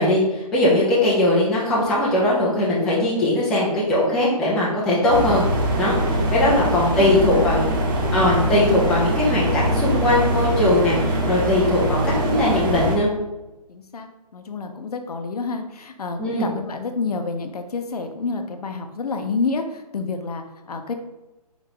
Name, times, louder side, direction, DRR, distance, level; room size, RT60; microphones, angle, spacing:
voice 1, 0.0-5.4 5.8-6.0 6.3-7.7 8.1-12.0 12.2-13.1 16.2-16.5, left 1 dB, 5° left, -8 dB, 0.4 m, -20 dB
voice 2, 0.7-1.1 6.5-7.8 13.7-20.9, left 4 dB, 65° left, 6 dB, 0.6 m, -29 dB
sound 1, 5.1-13.0, equal, 35° right, 0.7 m, -22 dB
3.9 x 3.7 x 2.9 m, 1.0 s
figure-of-eight pair, 140°, 21 cm